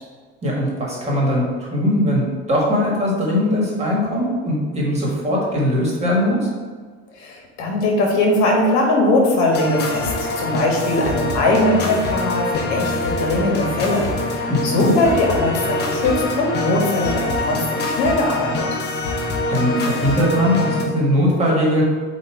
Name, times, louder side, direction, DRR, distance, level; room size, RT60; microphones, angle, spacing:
voice 1, 0.4-6.4 14.5-14.9 19.5-21.8, equal, 20° right, -3 dB, 1.5 m, -20 dB
voice 2, 7.2-10.1 10.4-18.6, left 2 dB, 60° left, -1 dB, 1.7 m, -20 dB
sound 1, 9.5-20.8, left 2 dB, 30° left, 0.8 m, -24 dB
8.0 x 2.7 x 4.6 m, 1.5 s
cardioid pair, 165°, 32 cm